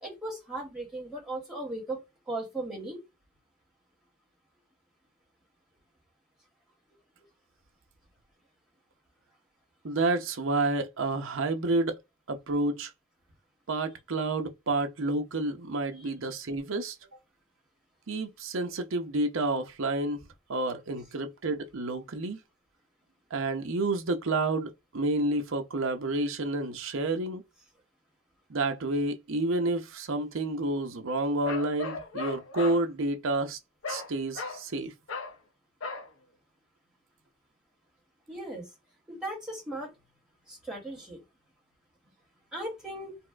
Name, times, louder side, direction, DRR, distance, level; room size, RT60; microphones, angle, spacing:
voice 1, 0.0-3.0 38.3-38.7 39.1-39.9 40.5-41.2 42.5-43.2, right 1 dB, 5° right, 1.7 m, -37 dB
voice 2, 9.8-12.0 12.3-12.9 13.7-17.0 18.1-20.2 20.5-22.4 23.3-27.4 28.5-33.6 33.9-34.9, right 2 dB, 65° right, 0.6 m, -29 dB
Bark, 31.4-32.8 33.8-34.1 34.3-34.6 35.1-35.4 35.8-36.1, left 4 dB, 65° left, 0.6 m, -36 dB
4.1 x 2.5 x 2.3 m
head